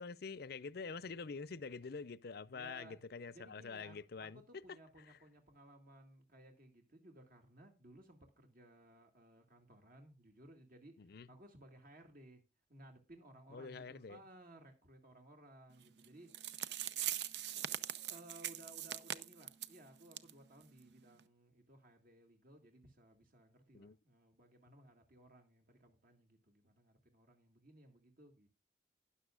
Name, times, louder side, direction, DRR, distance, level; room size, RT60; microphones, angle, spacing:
voice 1, 0.0-4.4 4.7-5.2 11.0-11.3 13.5-14.2 23.7-24.0, left 4 dB, 60° left, 0.6 m, -46 dB
voice 2, 2.5-3.0 3.3-12.4 12.7-16.5 17.7-28.5, right 1 dB, 55° right, 2.2 m, -60 dB
sound 1, 16.0-16.1 16.3-19.8 20.1-20.3 20.6-20.7 21.2-21.3, right 11 dB, 75° right, 0.7 m, -41 dB
13.0 x 10.5 x 2.4 m
head